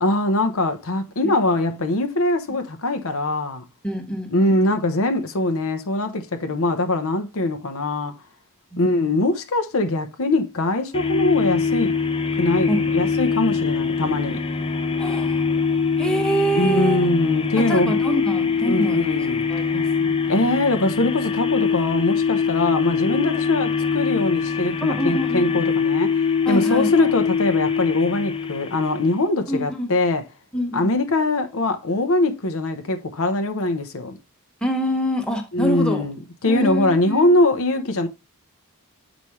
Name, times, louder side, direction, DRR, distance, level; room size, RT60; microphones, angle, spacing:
voice 1, 0.0-3.6 4.3-8.1 8.8-11.9 12.4-14.4 16.6-18.0 18.7-19.5 20.3-30.2 30.7-34.2 35.5-38.1, left 2 dB, 70° left, 0.9 m, -22 dB
voice 2, 1.5-1.8 3.8-4.7 8.7-9.1 12.7-12.9 15.0-15.6 16.0-17.1 17.6-19.1 19.5-20.6 23.1-23.3 24.8-25.6 26.4-27.1 29.5-29.9 30.5-30.9 34.6-36.1 36.5-37.3, right 1 dB, 5° left, 1.3 m, -26 dB
sound 1, 10.9-29.2, left 5 dB, 25° left, 0.6 m, -23 dB
7.0 x 5.0 x 3.1 m
head